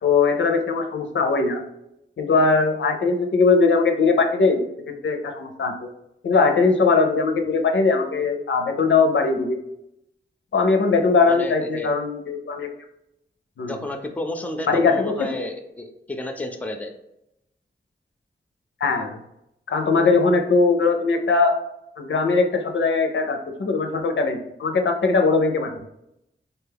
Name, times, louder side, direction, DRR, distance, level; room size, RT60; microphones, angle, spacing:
voice 1, 0.0-1.6 2.2-5.9 6.2-9.6 10.5-12.7 13.6-13.8 14.7-15.3 18.8-19.2 19.7-21.6 22.0-25.7, left 4 dB, 90° left, 4 dB, 0.5 m, -20 dB
voice 2, 11.3-11.9 13.6-16.9, left 2 dB, 10° left, 5 dB, 0.4 m, -31 dB
3.9 x 2.2 x 3.4 m, 0.83 s
wide cardioid pair, 90°, 19 cm